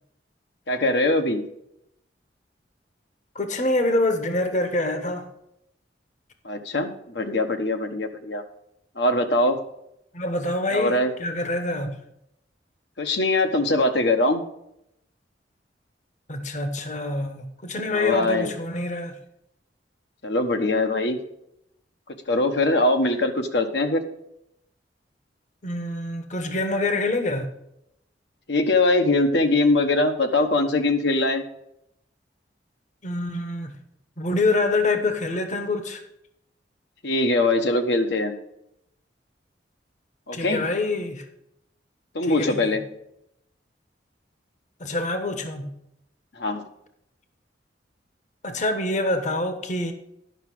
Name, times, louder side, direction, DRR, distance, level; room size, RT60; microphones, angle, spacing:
voice 1, 0.7-1.4 6.4-8.4 9.0-9.6 10.7-11.1 13.0-14.4 17.9-18.5 20.2-21.2 22.3-24.0 28.5-31.4 37.0-38.4 40.3-40.6 42.1-42.8 46.4-46.6, left 2 dB, 70° left, 1.2 m, -22 dB
voice 2, 3.3-5.2 10.1-11.9 16.3-19.1 25.6-27.5 33.0-33.8 34.2-36.0 40.3-41.2 42.3-42.7 44.8-45.7 48.4-49.9, left 2 dB, 45° left, 1.1 m, -26 dB
10.5 x 6.0 x 6.1 m
head